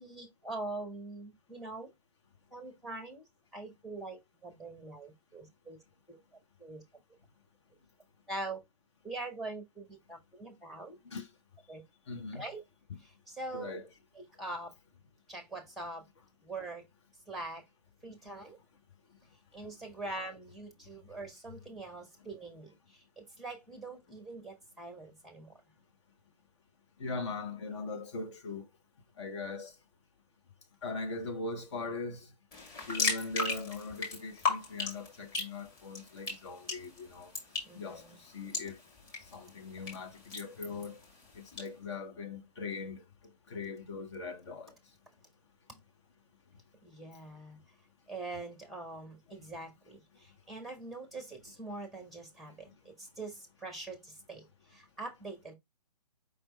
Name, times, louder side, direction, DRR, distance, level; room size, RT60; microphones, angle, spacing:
voice 1, 0.0-1.9 2.5-3.2 3.5-5.8 6.1-6.2 6.6-6.8 8.3-8.6 9.0-11.0 11.7-11.8 12.3-12.6 13.0-13.8 14.1-14.7 15.3-16.0 16.4-16.9 17.3-17.6 18.0-18.6 19.5-25.6 37.7-38.2 46.8-47.6 48.1-55.5, right 2 dB, ahead, 0.9 m, -43 dB
voice 2, 12.1-12.4 13.5-13.9 27.0-28.6 29.2-29.7 30.8-32.3 32.9-37.3 37.7-38.0 38.3-38.8 39.3-41.0 41.4-43.0 43.5-44.7, left 3 dB, 45° left, 1.0 m, -40 dB
sound 1, 32.5-41.7, left 3 dB, 20° left, 2.0 m, -38 dB
5.0 x 3.3 x 3.0 m
figure-of-eight pair, 130°, 21 cm